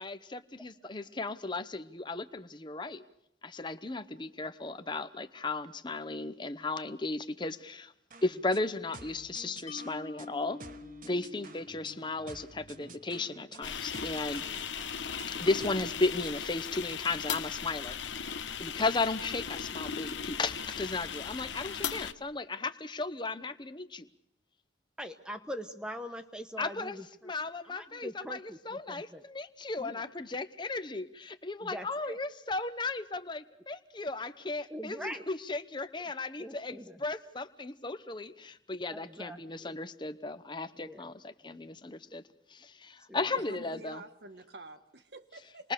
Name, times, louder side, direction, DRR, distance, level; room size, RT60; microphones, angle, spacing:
voice 1, 0.0-3.0 3.4-7.9 8.2-10.6 11.0-14.4 15.3-18.0 18.6-24.1 26.6-27.0 27.2-42.2 42.5-44.0 45.6-45.7, left 3 dB, 25° left, 11 dB, 0.9 m, -35 dB
sound 1, 8.1-16.4, right 3 dB, 45° right, 1.3 m, -52 dB
Mallet percussion, 9.7-12.9, left 4 dB, 45° left, 1.2 m, -48 dB
sound 2, 13.6-22.1, left 7 dB, 90° left, 1.1 m, -37 dB
voice 2, 25.0-27.3 27.6-29.2 29.8-30.0 31.6-32.2 34.7-35.3 36.4-37.0 38.9-39.8 40.7-41.1 41.4-41.6 43.1-43.2, equal, 5° right, 7 dB, 1.1 m, -43 dB
voice 3, 43.3-45.7, right 2 dB, 65° right, 9 dB, 1.6 m, -49 dB
28.0 x 21.0 x 6.7 m, 0.77 s
head